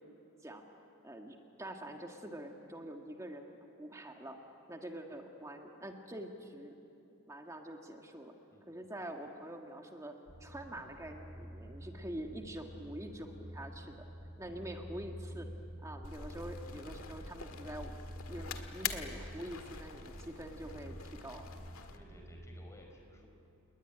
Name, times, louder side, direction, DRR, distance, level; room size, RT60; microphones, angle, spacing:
voice 1, 1.0-4.4 4.7-6.8 7.3-8.3 8.7-14.1 14.4-15.5 15.8-18.0 18.3-21.5, right 1 dB, 15° right, 3 dB, 1.7 m, -45 dB
voice 2, 8.5-9.0 14.4-14.7 21.9-23.3, left 1 dB, 15° left, 2 dB, 4.8 m, -58 dB
sound 1, 10.3-22.7, equal, 50° right, 3.8 m, -49 dB
sound 2, 16.0-22.0, left 6 dB, 80° left, 1.9 m, -45 dB
30.0 x 20.0 x 9.9 m, 2.8 s
head